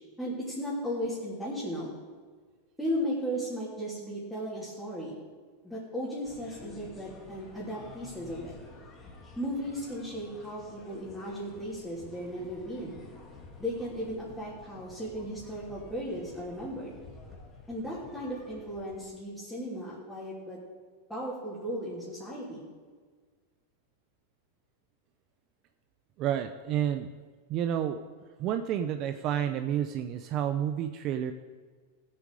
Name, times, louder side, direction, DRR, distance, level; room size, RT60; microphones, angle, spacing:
voice 1, 0.2-2.0 2.8-5.2 5.6-8.5 9.4-13.0 13.6-16.9 17.7-20.6 21.1-22.6, equal, 5° left, -10 dB, 3.0 m, -36 dB
sound 1, 6.2-19.1, left 3 dB, 20° left, 1.9 m, -50 dB
voice 2, 26.2-27.1 27.5-28.0 28.4-31.3, right 10 dB, 40° right, 8 dB, 0.5 m, -30 dB
15.5 x 7.6 x 4.9 m, 1.6 s
supercardioid pair, 145°, 0 cm